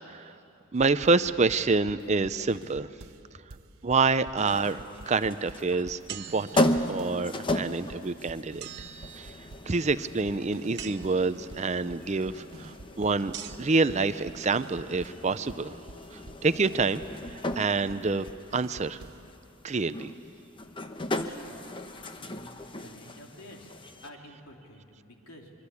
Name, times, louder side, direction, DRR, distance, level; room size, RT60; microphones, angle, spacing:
voice 1, 0.1-0.4 0.7-2.9 3.8-8.7 9.2-9.3 9.7-13.3 13.6-15.8 16.1-18.3 18.5-19.0 19.6-20.1, right 4 dB, 30° right, 13 dB, 0.5 m, -27 dB
sound 1, 0.8-3.2 3.5-7.2 7.5-11.2 11.5-19.3, right 2 dB, 70° right, 0.9 m, -49 dB
sound 2, 4.4-24.1, left 1 dB, 25° left, 0.9 m, -36 dB
sound 3, 6.1-7.1 8.6-9.7 10.8-11.5 13.3-13.9, right 10 dB, 50° right, 1.1 m, -44 dB
voice 2, 21.2-23.7 24.0-25.5, left 1 dB, 80° left, 1 dB, 3.2 m, -50 dB
25.5 x 23.5 x 8.4 m, 2.7 s
head